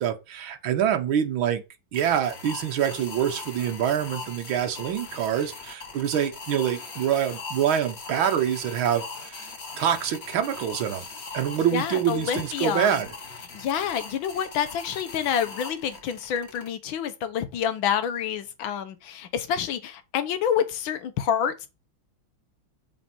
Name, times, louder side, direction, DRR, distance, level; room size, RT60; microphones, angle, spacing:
voice 1, 0.0-1.6 1.9-9.5 9.8-11.1 11.3-13.1, right 9 dB, 80° right, 1.9 m, -25 dB
sound 1, 1.9-16.7, left 4 dB, 35° left, 1.4 m, -40 dB
voice 2, 11.7-12.9 13.5-21.7, left 8 dB, 75° left, 1.7 m, -28 dB
8.1 x 4.2 x 4.4 m
omnidirectional pair, 2.2 m